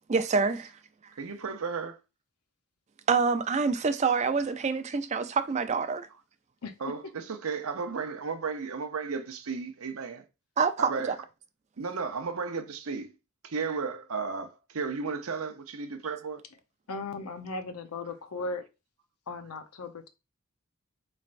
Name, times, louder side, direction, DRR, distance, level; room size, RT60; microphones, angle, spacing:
voice 1, 0.1-0.7 3.1-6.1 10.6-11.2, right 5 dB, 30° right, 0.3 m, -26 dB
voice 2, 1.2-2.0 6.1-6.2 6.8-10.2 10.8-11.3 11.8-13.1 13.4-16.4, right 5 dB, 70° right, 0.6 m, -34 dB
voice 3, 16.9-18.6 19.3-20.1, left 3 dB, 85° left, 0.7 m, -37 dB
4.3 x 3.2 x 2.5 m
head